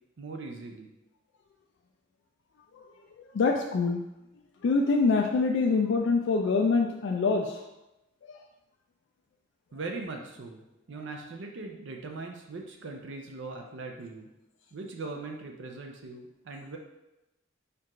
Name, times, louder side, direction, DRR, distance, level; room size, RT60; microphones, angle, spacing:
voice 1, 0.2-0.9 9.7-14.3 14.7-16.8, right 3 dB, 60° right, 2 dB, 0.5 m, -40 dB
voice 2, 3.3-4.0 4.6-7.6, left 4 dB, 60° left, 3 dB, 0.3 m, -25 dB
4.5 x 2.4 x 4.8 m, 0.95 s
head